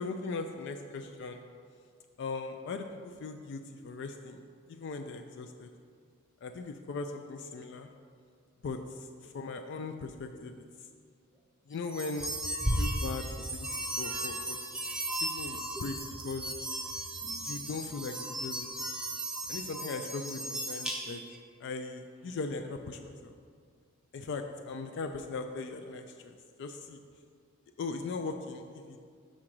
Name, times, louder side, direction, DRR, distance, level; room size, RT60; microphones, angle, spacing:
voice 1, 0.0-1.4 2.2-4.4 4.7-5.7 6.4-7.9 8.6-10.6 11.7-12.3 12.6-13.7 14.0-14.6 15.2-16.0 16.2-16.5 17.4-18.7 19.5-21.2 21.6-23.3 24.1-27.0 27.8-29.0, left 3 dB, 55° left, 5 dB, 0.3 m, -39 dB
sound 1, 11.8-21.4, right 1 dB, 5° right, 0.5 m, -36 dB
6.2 x 3.8 x 6.0 m, 2.1 s
head